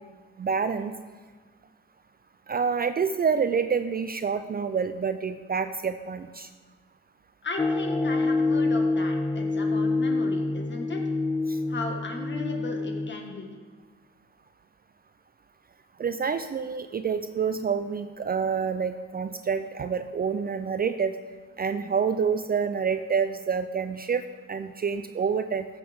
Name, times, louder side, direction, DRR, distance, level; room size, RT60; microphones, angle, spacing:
voice 1, 0.4-0.9 2.5-6.5 11.5-11.6 16.0-21.2 21.6-24.2 24.5-25.7, right 6 dB, 30° right, 10 dB, 0.4 m, -27 dB
voice 2, 7.4-11.0 11.7-13.5, left 3 dB, 40° left, 2 dB, 1.8 m, -36 dB
sound 1, 7.6-13.1, left 3 dB, 10° left, 0.7 m, -26 dB
14.5 x 6.3 x 3.6 m, 1.5 s
cardioid pair, 90°, 30 cm